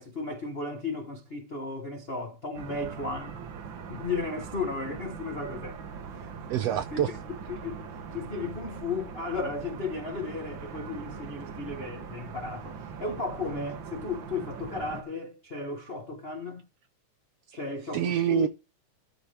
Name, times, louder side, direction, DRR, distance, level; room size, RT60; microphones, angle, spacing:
voice 1, 0.0-3.4 3.9-5.8 6.2-6.3 6.9-7.1 7.5-7.9 8.1-16.6 17.5-18.5, left 3 dB, 55° left, 0.6 m, -35 dB
sound 1, 2.5-15.0, right 6 dB, 60° right, 1.4 m, -41 dB
voice 2, 6.5-7.1 17.9-18.5, right 10 dB, 75° right, 1.5 m, -26 dB
11.5 x 5.0 x 5.7 m
omnidirectional pair, 3.4 m